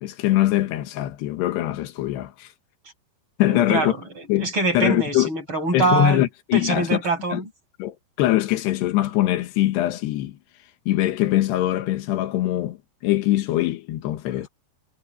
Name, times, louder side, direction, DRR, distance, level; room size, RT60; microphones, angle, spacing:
voice 1, 0.0-2.5 3.4-3.9 4.3-5.3 5.7-6.9 7.3-7.4 7.8-10.4 10.9-12.8 13.0-14.5, left 15 dB, 85° left, 3.5 m, -22 dB
voice 2, 3.5-6.2 6.5-7.4, right 3 dB, 30° right, 6.7 m, -24 dB
omnidirectional pair, 4.7 m